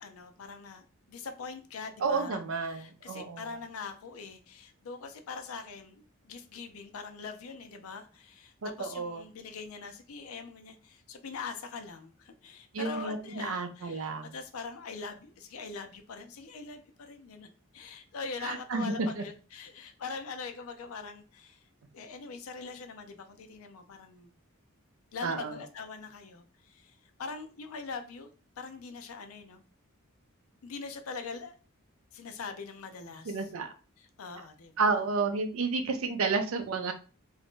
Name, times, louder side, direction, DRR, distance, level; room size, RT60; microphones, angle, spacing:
voice 1, 0.0-2.4 2.7-17.5 17.7-21.6 21.9-24.3 25.1-28.3 28.6-29.6 30.6-31.6 32.1-33.4 34.2-34.8, left 4 dB, 90° left, 6 dB, 0.5 m, -42 dB
voice 2, 2.0-3.6 8.6-9.2 12.7-14.3 18.4-19.2 25.2-25.6 33.3-33.7 34.8-36.9, right 4 dB, 70° right, 6 dB, 0.5 m, -31 dB
2.6 x 2.4 x 3.5 m, 0.35 s
head